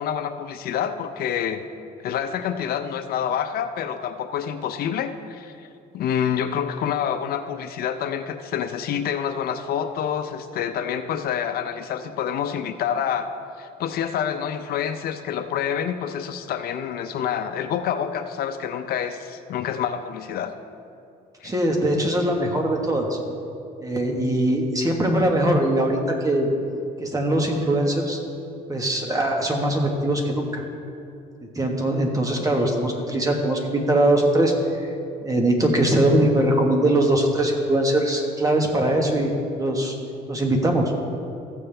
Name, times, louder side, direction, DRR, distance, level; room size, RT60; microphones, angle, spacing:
voice 1, 0.0-1.7 2.0-5.7 5.9-20.5 21.4-21.5, left 8 dB, 65° left, 8 dB, 0.6 m, -27 dB
voice 2, 21.4-23.2 23.8-26.5 27.0-28.2 28.7-30.6 31.5-34.5 35.2-39.9 40.3-40.9, right 1 dB, 20° right, 2 dB, 1.4 m, -21 dB
15.0 x 7.2 x 3.4 m, 2.5 s
cardioid pair, 110°, 17 cm